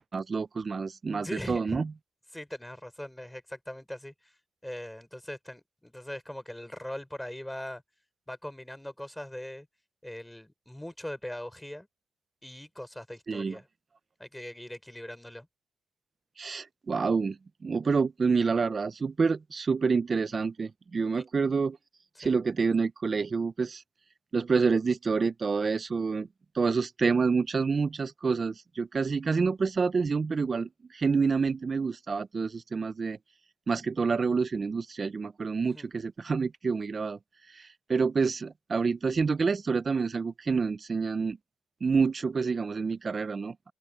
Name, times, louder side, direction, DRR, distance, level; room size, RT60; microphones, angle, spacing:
voice 1, 0.0-1.9 13.3-13.6 16.4-17.4 17.6-21.8 22.2-23.8 24.3-26.3 26.6-33.2 33.7-37.2 37.9-41.4 41.8-43.5, right 5 dB, 40° right, 0.6 m, -28 dB
voice 2, 1.2-1.8 2.3-4.3 4.6-7.8 8.3-9.7 10.0-11.9 12.4-13.7 14.2-15.5 21.1-21.3 22.2-22.3 35.7-35.9, left 1 dB, 5° left, 6.3 m, -40 dB
open air
cardioid pair, 80°, 0 cm